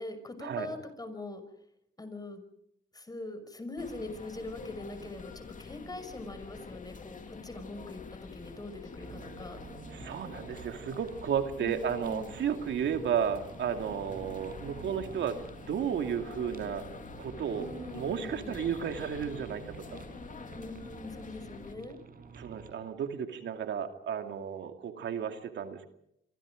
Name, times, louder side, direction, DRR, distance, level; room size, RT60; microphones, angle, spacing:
voice 1, 0.0-1.4 2.0-2.4 2.9-9.6 11.6-12.3 17.5-18.6 20.5-22.0, left 2 dB, 20° left, 9 dB, 6.1 m, -42 dB
sound 1, 3.8-21.7, left 5 dB, 40° left, 2.6 m, -47 dB
sound 2, 9.0-22.7, right 5 dB, 45° right, 5.4 m, -49 dB
voice 2, 9.9-15.4 15.7-16.8 17.2-20.0 22.3-25.9, right 8 dB, 65° right, 6 dB, 2.6 m, -33 dB
27.0 x 25.0 x 5.2 m, 0.76 s
cardioid pair, 90°, 20 cm